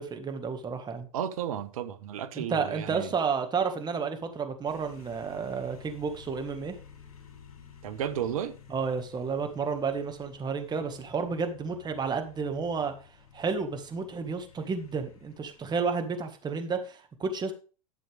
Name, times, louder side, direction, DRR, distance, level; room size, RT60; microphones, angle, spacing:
voice 1, 0.0-1.1 2.3-6.7 8.7-12.9 13.3-17.5, right 5 dB, 20° right, 1.9 m, -31 dB
voice 2, 1.1-3.1 7.8-8.5, right 9 dB, 70° right, 1.3 m, -33 dB
sound 1, 4.7-16.4, left 6 dB, 70° left, 2.9 m, -53 dB
12.0 x 7.0 x 3.6 m
hypercardioid pair, 95°, 19 cm